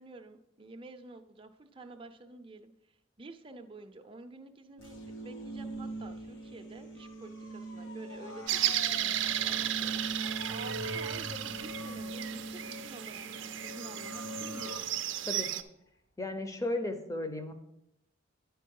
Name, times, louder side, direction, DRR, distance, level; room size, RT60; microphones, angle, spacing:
voice 1, 0.0-14.8, right 2 dB, 25° right, 5 dB, 0.6 m, -50 dB
sound 1, 4.8-14.8, right 2 dB, 80° left, 1.3 m, -42 dB
Motor vehicle (road) / Siren, 7.0-15.9 16.3-16.7, left 2 dB, 45° left, 1.1 m, -53 dB
sound 2, 8.5-15.6, right 11 dB, 70° right, 0.5 m, -34 dB
voice 2, 16.2-17.5, left 1 dB, 15° left, 7 dB, 0.7 m, -34 dB
9.9 x 4.6 x 5.3 m, 0.86 s
head